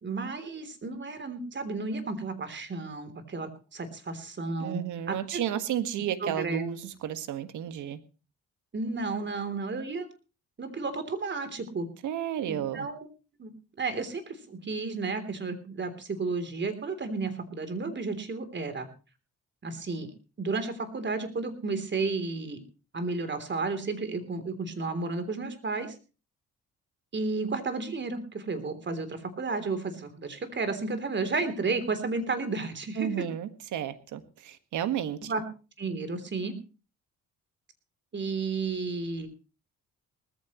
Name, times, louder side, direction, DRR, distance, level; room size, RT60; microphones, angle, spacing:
voice 1, 0.0-4.8 5.1-5.4 6.2-6.6 8.7-10.1 10.6-11.9 12.5-13.1 13.4-13.5 13.8-18.9 19.6-20.1 20.4-22.6 22.9-26.0 27.1-33.3 35.2-35.4 35.8-36.6 38.1-39.3, right 3 dB, 40° right, 10 dB, 3.4 m, -32 dB
voice 2, 4.6-8.0 12.0-12.9 33.0-35.3, right 10 dB, 80° right, 11 dB, 1.7 m, -32 dB
19.5 x 14.5 x 3.1 m, 0.34 s
cardioid pair, 90°, 30 cm